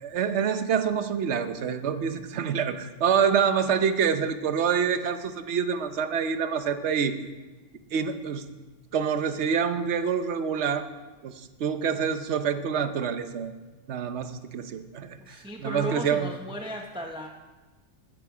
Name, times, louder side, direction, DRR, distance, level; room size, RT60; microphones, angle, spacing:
voice 1, 0.0-7.2 7.9-8.5 8.9-10.9 11.2-13.5 13.9-16.3, right 7 dB, 55° right, 10 dB, 1.0 m, -26 dB
voice 2, 15.3-17.3, equal, 5° right, 2 dB, 0.5 m, -35 dB
14.0 x 10.0 x 4.9 m, 1.2 s
omnidirectional pair, 1.5 m